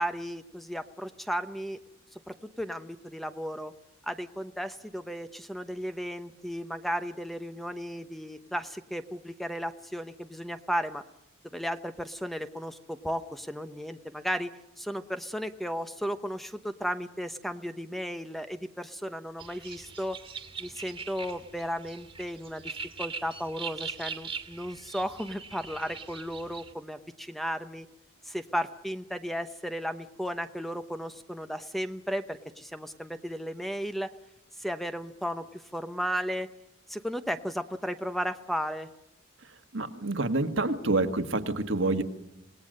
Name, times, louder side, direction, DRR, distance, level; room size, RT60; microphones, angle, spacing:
voice 1, 0.0-1.8 2.1-3.7 4.0-11.0 11.5-14.5 14.8-20.2 20.6-22.7 23.0-27.9 28.2-34.1 34.6-36.5 36.9-38.9, equal, ahead, 9 dB, 0.9 m, -34 dB
sound 1, 19.4-26.7, right 5 dB, 25° right, 1.9 m, -41 dB
voice 2, 39.7-42.0, right 2 dB, 70° right, 7 dB, 1.7 m, -27 dB
27.0 x 19.0 x 6.6 m, 0.87 s
head